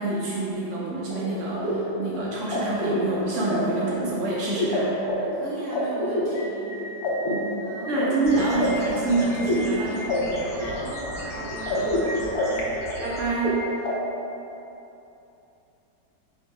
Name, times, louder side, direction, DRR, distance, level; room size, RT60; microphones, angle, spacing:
voice 1, 0.0-5.3 7.3-7.6 7.8-10.2 11.7-12.0 13.0-13.7, right 2 dB, 75° right, -5 dB, 0.7 m, -27 dB
sound 1, 1.1-13.9, left 1 dB, 65° left, 1.1 m, -28 dB
voice 2, 5.3-6.8 7.6-8.0 10.5-12.8, right 2 dB, 40° right, -8 dB, 1.2 m, -38 dB
sound 2, 8.2-13.2, equal, ahead, 0.8 m, -38 dB
5.4 x 2.0 x 4.5 m, 2.9 s
omnidirectional pair, 1.9 m